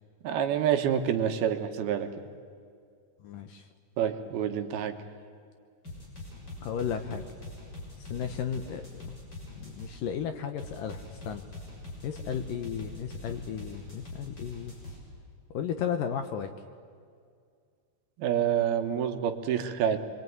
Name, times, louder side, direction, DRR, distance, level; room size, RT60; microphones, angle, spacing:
voice 1, 0.2-2.1 4.0-4.9 18.2-20.0, right 9 dB, 70° right, 7 dB, 3.0 m, -27 dB
voice 2, 3.2-3.7 6.6-7.2 8.0-9.1 9.6-11.4 12.0-14.7 15.5-16.5, left 8 dB, 70° left, 7 dB, 2.2 m, -34 dB
sound 1, 5.8-10.0 10.6-15.0, left 2 dB, 25° left, 7.1 m, -43 dB
26.5 x 23.0 x 9.5 m, 2.2 s
omnidirectional pair, 4.9 m